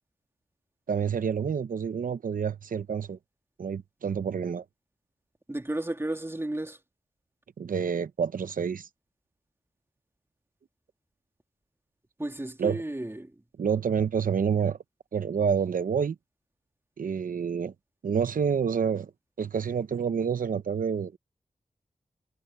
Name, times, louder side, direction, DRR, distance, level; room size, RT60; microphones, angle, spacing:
voice 1, 0.9-3.2 3.6-4.6 7.6-8.9 12.6-12.8 13.6-14.8 15.1-16.2 17.0-17.7 18.0-19.1 19.4-21.2, right 7 dB, 90° right, 0.8 m, -28 dB
voice 2, 5.5-6.8 12.2-13.3, right 1 dB, 20° right, 2.8 m, -33 dB
wide cardioid pair, 80°, 14 cm